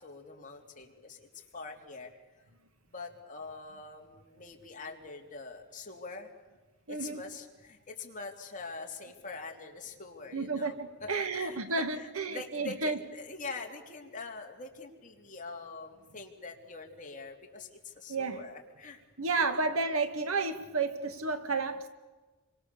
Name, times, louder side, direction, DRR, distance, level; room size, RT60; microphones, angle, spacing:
voice 1, 0.0-2.2 2.9-6.3 6.9-11.6 11.9-19.0 19.3-19.8, left 3 dB, 40° left, 2 dB, 3.3 m, -44 dB
voice 2, 6.9-7.2 10.3-13.0 18.1-18.4 19.2-21.9, right 3 dB, 75° right, 8 dB, 2.0 m, -31 dB
29.5 x 24.5 x 7.0 m, 1.2 s
head